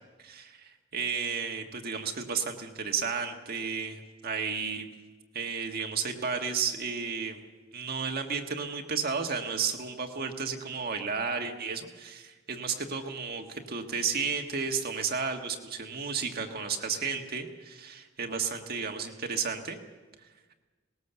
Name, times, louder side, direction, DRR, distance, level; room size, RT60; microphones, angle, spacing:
voice 1, 0.2-4.9 5.3-7.4 7.7-19.8, right 5 dB, 50° right, 3 dB, 1.6 m, -33 dB
21.0 x 19.5 x 6.9 m, 1.3 s
head